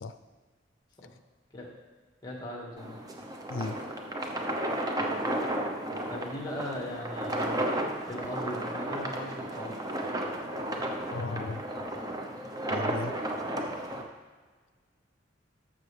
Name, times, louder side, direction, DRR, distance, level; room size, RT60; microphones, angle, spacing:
voice 1, 2.2-3.0 6.1-7.6 8.1-9.7, left 1 dB, 20° left, -2 dB, 1.9 m, -38 dB
sound 1, 2.8-14.0, right 1 dB, 20° right, 0.8 m, -33 dB
voice 2, 11.1-11.6 12.7-13.1, left 3 dB, 80° left, 11 dB, 0.5 m, -35 dB
12.0 x 7.3 x 3.4 m, 1.5 s
head